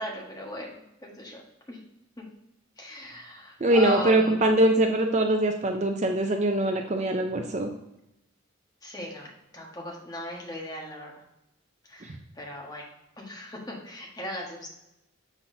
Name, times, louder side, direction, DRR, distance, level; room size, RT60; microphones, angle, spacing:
voice 1, 0.0-1.4 1.7-1.8 2.2-2.3 2.8-4.7 8.8-11.1 11.9-12.8 13.2-14.7, equal, 20° left, -2 dB, 1.3 m, -38 dB
voice 2, 3.6-7.7, right 1 dB, 35° right, 4 dB, 0.5 m, -23 dB
7.0 x 5.9 x 2.7 m, 0.87 s
head